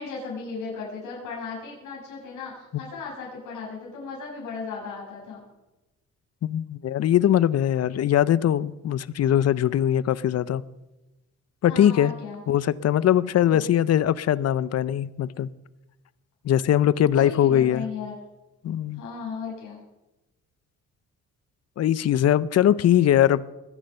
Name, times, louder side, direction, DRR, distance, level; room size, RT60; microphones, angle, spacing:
voice 1, 0.0-5.4 11.6-12.4 13.5-13.7 17.1-18.1 18.9-19.8, left 5 dB, 85° left, 6.6 m, -36 dB
voice 2, 6.4-10.6 11.6-12.1 12.5-15.5 16.4-17.8 18.6-19.0 21.8-23.4, left 11 dB, 55° left, 0.7 m, -21 dB
20.5 x 10.5 x 5.5 m
cardioid pair, 90°, 30 cm